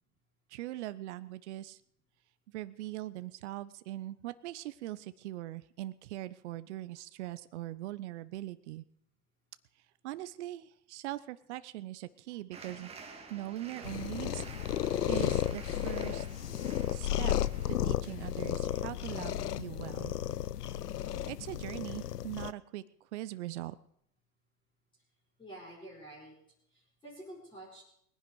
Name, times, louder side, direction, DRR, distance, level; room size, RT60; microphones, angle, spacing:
voice 1, 0.5-1.8 2.5-8.8 10.0-12.9 13.3-14.4 15.1-16.3 16.9-17.4 17.7-20.1 21.0-23.7, right 15 dB, 45° right, 15 dB, 0.8 m, -41 dB
sound 1, 12.5-18.4, right 5 dB, 10° right, 1.9 m, -50 dB
sound 2, 13.8-22.5, left 11 dB, 85° left, 0.7 m, -33 dB
voice 2, 25.4-26.3 26.7-27.8, right 1 dB, 10° left, -5 dB, 4.1 m, -49 dB
20.5 x 10.5 x 4.7 m, 0.68 s
hypercardioid pair, 120°, 47 cm